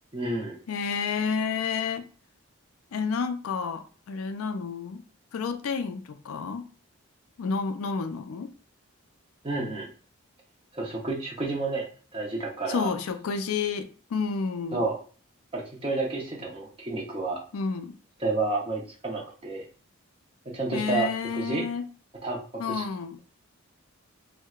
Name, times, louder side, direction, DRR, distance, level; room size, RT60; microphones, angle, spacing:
voice 1, 0.1-0.6 9.4-9.9 10.7-12.9 14.7-15.0 15.5-17.4 18.2-19.6 20.5-21.6 22.2-22.4 22.7-22.8, right 3 dB, 25° right, 0.7 m, -30 dB
voice 2, 0.7-2.1 2.9-5.0 5.3-6.7 7.4-8.5 12.7-14.8 17.5-18.0 20.7-21.9 22.6-23.2, left 5 dB, 80° left, 0.4 m, -30 dB
4.4 x 2.1 x 2.3 m
head